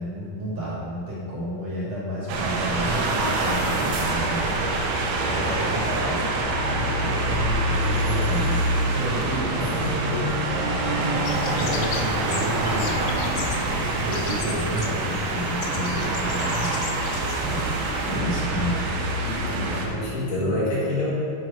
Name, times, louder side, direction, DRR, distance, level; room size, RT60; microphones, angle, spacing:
voice 1, 0.0-8.6 8.9-13.2 13.6-18.8, equal, 50° right, -6 dB, 2.6 m, -31 dB
sound 1, 2.3-19.9, right 2 dB, 85° right, 3.0 m, -25 dB
sound 2, 11.2-18.2, left 6 dB, 80° left, 2.4 m, -34 dB
voice 2, 19.2-21.1, left 1 dB, 60° left, -6 dB, 3.2 m, -27 dB
7.7 x 7.6 x 5.4 m, 2.4 s
omnidirectional pair, 4.4 m